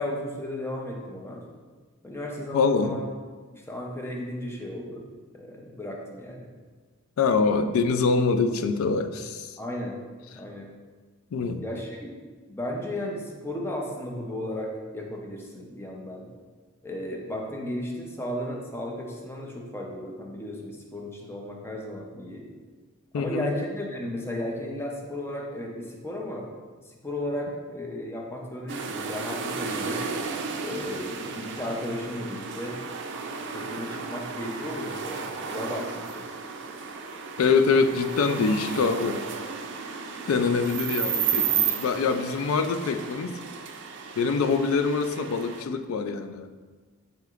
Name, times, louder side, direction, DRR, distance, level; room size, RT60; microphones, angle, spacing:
voice 1, 0.0-1.4 2.0-3.1 3.5-5.0 5.3-6.5 9.6-10.0 10.3-10.7 11.6-12.2 12.5-16.3 16.8-22.5 23.1-26.5 26.9-30.1 30.6-32.8 33.5-36.3, left 1 dB, 10° left, 0 dB, 0.5 m, -34 dB
voice 2, 2.5-2.9 7.2-9.5 11.3-11.6 23.1-23.5 37.4-39.2 40.3-43.4 44.2-46.5, left 4 dB, 80° left, 8 dB, 0.3 m, -24 dB
sound 1, 28.7-45.6, right 6 dB, 60° right, 0.4 m, -33 dB
7.4 x 2.9 x 2.4 m, 1.4 s
head